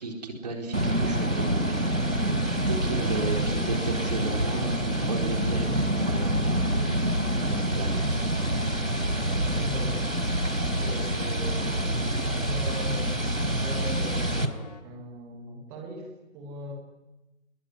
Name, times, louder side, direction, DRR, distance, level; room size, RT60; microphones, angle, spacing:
voice 1, 0.0-2.3 2.7-8.3, right 3 dB, 30° right, 2 dB, 4.3 m, -35 dB
sound 1, 0.7-14.5, right 1 dB, 85° right, 3.9 m, -26 dB
sound 2, 0.9-14.8, left 4 dB, 30° left, 2.6 m, -45 dB
voice 2, 2.9-3.5 9.3-10.1 10.6-16.7, right 1 dB, 5° right, 2 dB, 1.7 m, -40 dB
26.5 x 22.0 x 9.8 m, 0.99 s
figure-of-eight pair, 155°, 40 cm